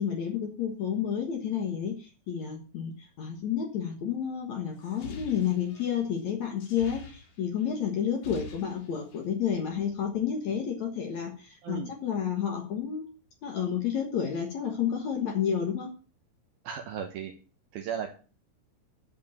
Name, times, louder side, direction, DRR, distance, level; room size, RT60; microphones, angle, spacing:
voice 1, 0.0-13.0 13.4-15.9, left 8 dB, 75° left, 2 dB, 1.6 m, -30 dB
sound 1, 4.7-7.7 8.0-9.3, left 5 dB, 45° left, 3.5 m, -46 dB
voice 2, 11.6-11.9 16.6-17.3 17.7-18.1, right 8 dB, 80° right, 4 dB, 2.1 m, -35 dB
12.0 x 5.4 x 7.3 m, 0.36 s
omnidirectional pair, 5.8 m